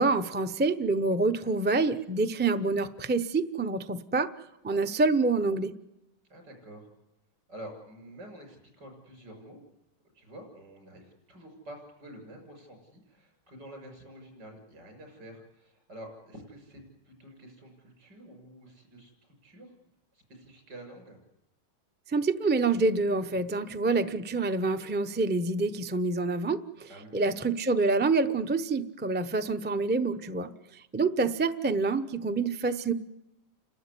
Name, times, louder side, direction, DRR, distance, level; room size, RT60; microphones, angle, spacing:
voice 1, 0.0-4.3 4.6-5.7 22.1-30.5 30.9-32.9, right 3 dB, 15° right, 8 dB, 0.4 m, -27 dB
voice 2, 6.3-6.9 7.5-9.6 10.1-19.7 20.1-21.2 26.9-27.3, right 1 dB, 75° right, 3 dB, 7.5 m, -48 dB
30.0 x 13.0 x 9.8 m, 0.91 s
omnidirectional pair, 1.9 m